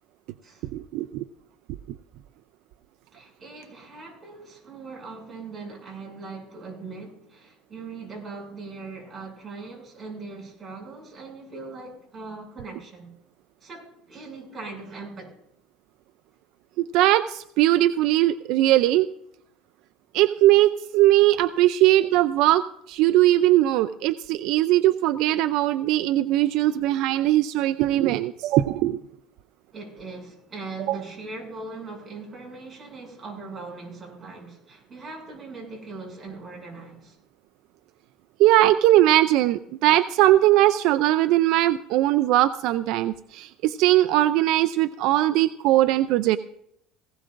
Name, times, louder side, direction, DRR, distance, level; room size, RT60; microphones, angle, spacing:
voice 1, 0.7-1.2 16.8-19.1 20.1-29.0 30.9-31.0 38.4-46.4, right 15 dB, 70° right, 12 dB, 0.4 m, -20 dB
voice 2, 3.1-13.1 13.6-15.3 29.7-37.2, right 3 dB, 25° right, -1 dB, 6.8 m, -40 dB
19.0 x 17.0 x 2.5 m, 0.74 s
cardioid pair, 125°, 0 cm